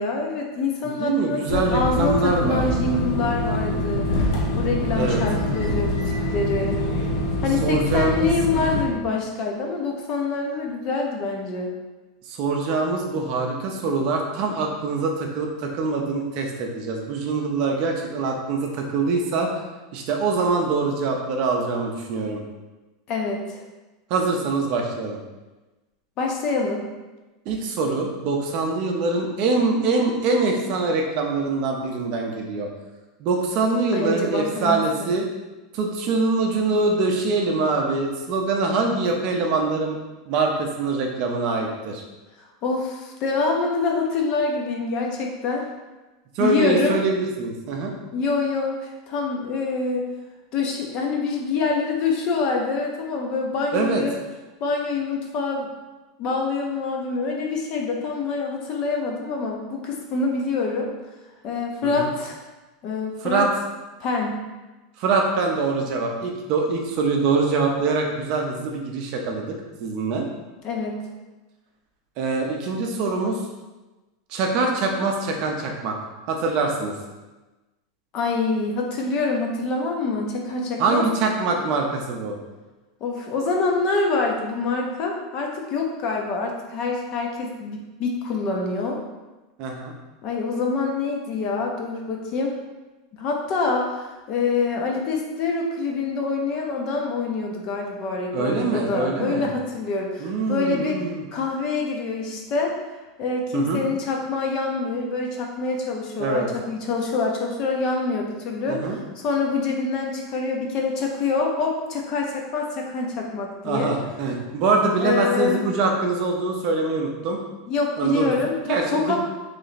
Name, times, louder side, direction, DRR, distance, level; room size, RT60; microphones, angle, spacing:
voice 1, 0.0-4.1 4.6-6.8 7.4-11.7 23.1-23.6 26.2-26.8 33.9-35.1 42.6-45.6 46.4-47.0 48.1-50.1 50.5-54.2 54.6-55.7 56.2-60.9 61.4-62.4 62.8-63.4 64.0-64.4 70.6-71.0 78.1-81.0 83.0-89.0 90.2-92.6 93.2-101.0 101.3-102.7 103.2-113.9 115.0-115.6 117.7-119.2, left 4 dB, 35° left, 0 dB, 0.6 m, -26 dB
voice 2, 0.8-3.8 5.0-5.2 7.6-8.8 12.3-19.5 19.9-22.4 24.1-25.2 27.5-32.7 33.2-35.3 35.7-40.0 40.3-42.0 46.4-47.9 53.7-54.0 61.8-62.1 63.2-63.5 65.0-70.3 72.2-73.4 74.3-76.0 76.3-76.9 80.8-82.4 89.6-89.9 98.3-99.5 100.2-101.2 103.5-103.8 106.2-106.5 108.7-109.0 113.6-117.4 118.0-118.3 118.7-119.2, right 3 dB, 40° right, 1 dB, 0.5 m, -24 dB
sound 1, 1.5-8.9, left 1 dB, 85° left, 0.8 m, -25 dB
3.2 x 3.0 x 4.0 m, 1.1 s
supercardioid pair, 170°, 2 cm